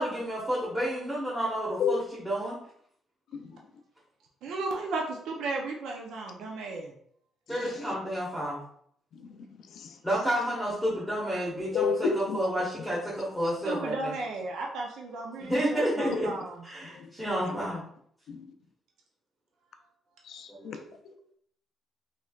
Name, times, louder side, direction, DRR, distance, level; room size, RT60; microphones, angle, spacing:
voice 1, 0.0-2.0 2.3-2.5 7.5-8.6 10.0-14.1 15.4-16.3 16.6-17.8 20.6-20.7, equal, 5° right, -8 dB, 1.0 m, -30 dB
voice 2, 4.4-6.9 13.6-16.7, right 3 dB, 85° right, 0 dB, 0.5 m, -35 dB
voice 3, 7.5-7.9 9.1-9.4 9.6-10.0 11.7-12.4 16.1-16.2 16.8-17.1 17.4-17.6 18.3-18.4 20.2-21.3, left 5 dB, 75° left, 6 dB, 0.4 m, -32 dB
3.1 x 2.9 x 2.3 m, 0.65 s
cardioid pair, 90°, 0 cm